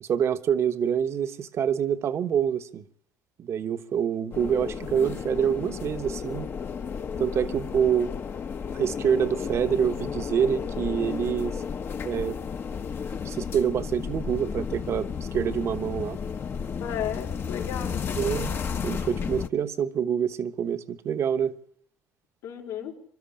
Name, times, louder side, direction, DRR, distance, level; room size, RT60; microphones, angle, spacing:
voice 1, 0.0-2.8 3.4-6.5 7.2-8.1 8.7-11.6 12.0-12.4 13.2-16.2 18.1-18.5 18.8-21.5, right 8 dB, 50° right, 1.2 m, -26 dB
sound 1, 4.3-19.5, left 6 dB, 40° left, 1.0 m, -33 dB
voice 2, 16.8-18.5 22.4-23.0, left 9 dB, 85° left, 4.4 m, -34 dB
26.0 x 12.5 x 8.7 m
cardioid pair, 105°, 6 cm